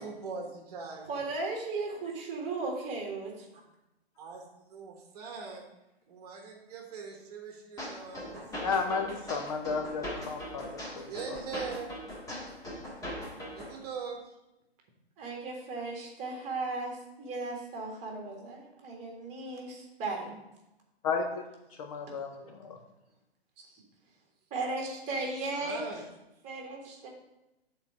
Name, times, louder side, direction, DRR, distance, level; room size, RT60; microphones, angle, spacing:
voice 1, 0.0-1.3 4.2-5.6 6.1-8.5 11.1-11.9 13.5-14.2 25.5-26.1, right 5 dB, 40° right, 2 dB, 1.3 m, -41 dB
voice 2, 1.1-3.5 15.2-20.3 24.5-25.8 26.4-27.1, right 3 dB, 20° right, -1 dB, 1.8 m, -36 dB
sound 1, 7.8-13.8, equal, 10° left, 1.5 m, -40 dB
voice 3, 8.6-11.4 21.0-21.4 21.8-22.8, left 4 dB, 35° left, 3 dB, 0.7 m, -33 dB
7.3 x 4.0 x 6.1 m, 0.94 s
figure-of-eight pair, 125°, 32 cm